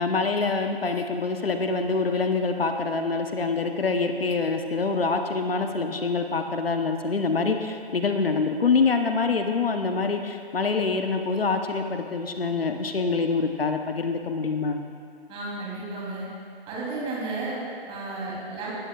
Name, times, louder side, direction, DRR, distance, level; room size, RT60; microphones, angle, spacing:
voice 1, 0.0-14.8, left 4 dB, 70° left, 6 dB, 0.9 m, -25 dB
voice 2, 15.3-16.3 16.7-18.7, right 2 dB, 15° right, -6 dB, 3.0 m, -33 dB
18.5 x 12.5 x 2.4 m, 2.2 s
figure-of-eight pair, 135°, 31 cm